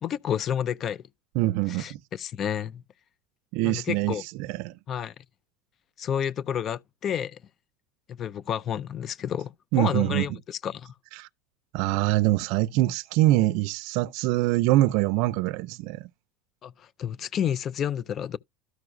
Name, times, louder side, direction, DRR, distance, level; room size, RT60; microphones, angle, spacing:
voice 1, 0.0-1.0 1.7-2.8 3.6-4.2 4.9-5.1 6.0-7.4 8.1-10.9 16.6-18.4, left 9 dB, 35° left, 0.4 m, -30 dB
voice 2, 1.4-2.0 3.5-4.1 4.5-4.7 9.7-10.3 11.2-11.3 11.7-16.1, right 17 dB, 60° right, 0.5 m, -24 dB
12.5 x 5.8 x 2.6 m
supercardioid pair, 135°, 0 cm